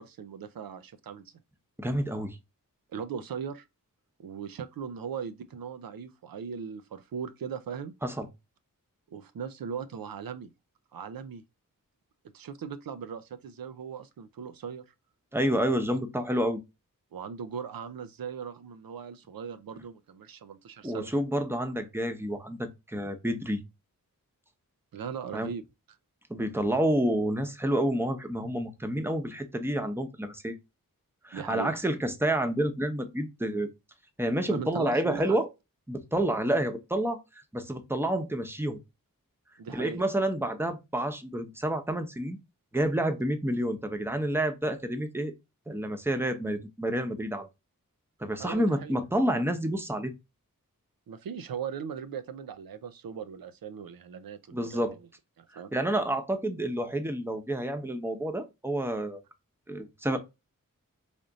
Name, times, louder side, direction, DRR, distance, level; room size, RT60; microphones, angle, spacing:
voice 1, 0.0-1.3 2.9-3.6 4.2-7.9 9.1-10.5 10.9-11.4 12.3-14.8 17.1-21.1 24.9-25.6 31.3-31.7 34.5-35.4 39.6-40.0 48.4-48.9 51.1-55.0 55.4-55.7, right 7 dB, 85° right, 0.5 m, -39 dB
voice 2, 1.8-2.4 8.0-8.3 15.3-16.6 20.8-23.6 25.3-25.5 26.3-30.6 31.2-33.7 34.2-35.5 35.9-37.2 37.5-38.8 39.7-42.4 42.7-45.3 45.7-47.5 48.2-50.1 54.5-55.0 55.7-59.2 59.7-60.2, right 1 dB, 5° right, 0.8 m, -29 dB
3.5 x 2.5 x 3.9 m
wide cardioid pair, 55°, 34 cm